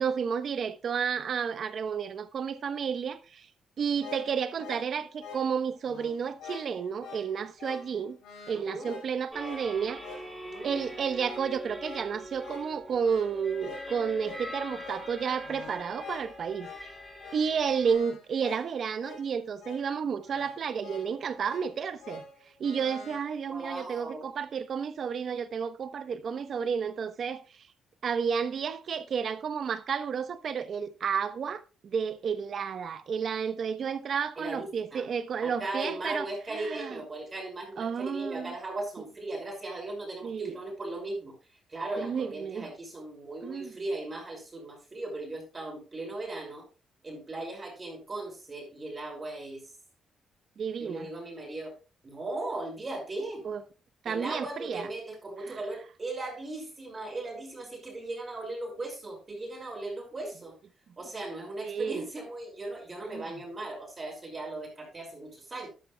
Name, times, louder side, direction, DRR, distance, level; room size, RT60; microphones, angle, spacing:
voice 1, 0.0-3.5 3.8-8.2 8.5-10.0 10.6-16.7 17.3-22.2 22.6-27.4 28.0-37.0 37.8-38.5 40.2-40.6 42.0-42.7 43.4-43.7 50.6-51.1 53.4-53.6 54.0-54.9 55.5-55.6 61.6-62.0 63.1-63.2, right 6 dB, 55° right, 1.1 m, -31 dB
sound 1, 3.8-23.2, left 4 dB, 80° left, 4.9 m, -47 dB
voice 2, 8.5-8.9 10.4-10.7 23.5-24.2 34.4-35.1 35.4-41.3 41.7-46.6 47.0-49.6 50.8-51.8 52.0-53.4 54.1-60.5 61.0-65.7, right 2 dB, 30° right, 5.7 m, -38 dB
sound 2, 9.3-18.0, equal, 5° right, 5.2 m, -43 dB
12.5 x 12.0 x 2.3 m
cardioid pair, 90°, 0 cm